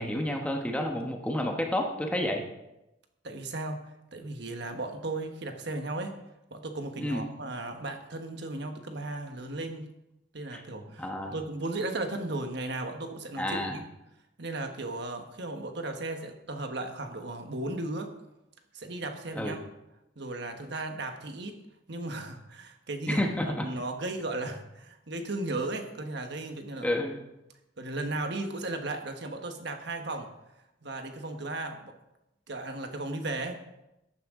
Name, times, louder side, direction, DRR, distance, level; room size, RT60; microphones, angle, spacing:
voice 1, 0.0-2.4 7.0-7.2 10.5-10.6 11.0-11.3 13.4-13.8 19.3-19.6 23.1-23.7 26.8-27.2, left 1 dB, 5° left, 2 dB, 1.2 m, -30 dB
voice 2, 3.2-3.8 4.1-6.2 6.5-9.9 10.3-13.8 14.4-18.1 18.7-19.6 20.2-21.6 21.9-26.9 27.8-30.3 30.8-32.0 32.5-33.6, right 2 dB, 60° right, 5 dB, 1.4 m, -35 dB
14.5 x 10.5 x 3.8 m, 0.91 s
head